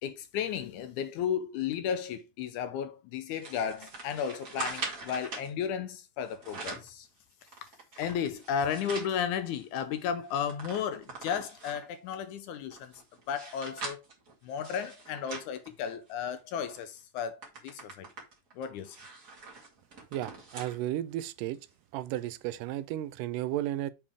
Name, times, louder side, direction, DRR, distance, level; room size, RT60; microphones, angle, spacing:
voice 1, 0.0-7.1 8.0-12.9 13.3-14.0 14.4-18.1 18.6-19.0, left 8 dB, 80° left, 1.9 m, -34 dB
sound 1, 3.4-5.5 6.2-6.9 7.4-9.1 9.6-9.7 9.9-12.0 12.5-16.3 16.7-16.9 17.2-20.8 21.2-21.3 22.1-22.2, right 4 dB, 30° right, 2.4 m, -43 dB
voice 2, 20.1-21.6 21.9-23.9, right 13 dB, 85° right, 2.2 m, -33 dB
7.3 x 4.4 x 4.8 m
omnidirectional pair, 3.8 m